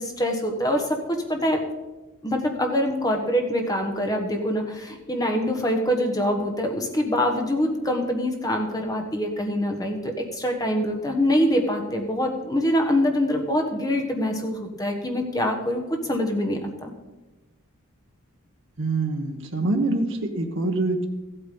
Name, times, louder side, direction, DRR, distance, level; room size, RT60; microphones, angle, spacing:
voice 1, 0.0-1.6 2.2-16.9, equal, 15° left, 3 dB, 1.2 m, -24 dB
voice 2, 18.8-21.0, right 2 dB, 55° right, 3 dB, 1.1 m, -25 dB
14.0 x 8.4 x 5.3 m, 1.1 s
head